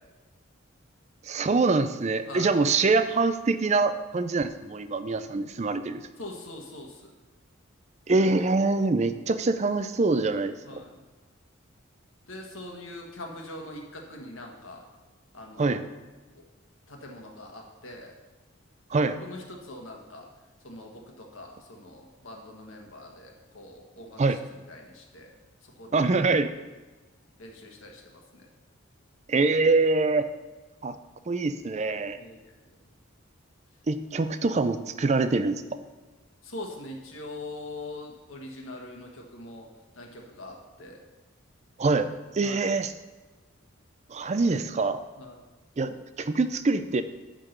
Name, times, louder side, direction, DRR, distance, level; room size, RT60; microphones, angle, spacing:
voice 1, 1.2-6.0 8.1-10.6 15.6-15.8 18.9-19.2 24.2-24.4 25.9-26.5 29.3-30.2 30.8-30.9 31.3-32.2 33.9-35.6 41.8-42.9 44.1-45.0 45.8-47.0, right 3 dB, 35° right, 11 dB, 0.4 m, -24 dB
voice 2, 2.3-2.6 6.2-7.1 10.6-11.0 12.3-14.8 15.3-15.8 16.9-18.1 19.2-20.3 20.6-24.2 24.7-25.3 25.8-26.2 27.4-28.5 32.1-32.4 36.4-39.7 39.9-41.0 42.4-42.6 45.2-45.4, left 2 dB, 85° left, 1 dB, 1.5 m, -42 dB
10.0 x 3.8 x 6.5 m, 1.2 s
head